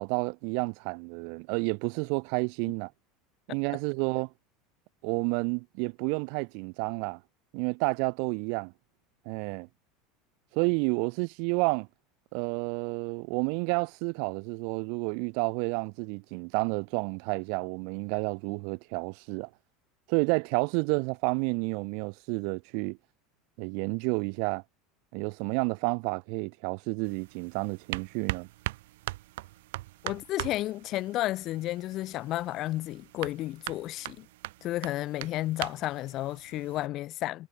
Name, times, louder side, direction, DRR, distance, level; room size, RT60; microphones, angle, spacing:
voice 1, 0.0-2.9 3.5-4.3 5.0-7.2 7.5-8.7 9.3-9.7 10.5-11.9 12.3-19.5 20.1-23.0 23.6-24.6 25.1-28.5, right 40 dB or more, 65° right, 0.3 m, -30 dB
sound 1, 27.0-36.9, right 18 dB, 80° right, 1.2 m, -41 dB
voice 2, 30.0-34.3 34.6-37.5, left 15 dB, 45° left, 0.6 m, -32 dB
supercardioid pair, 135°, 0 cm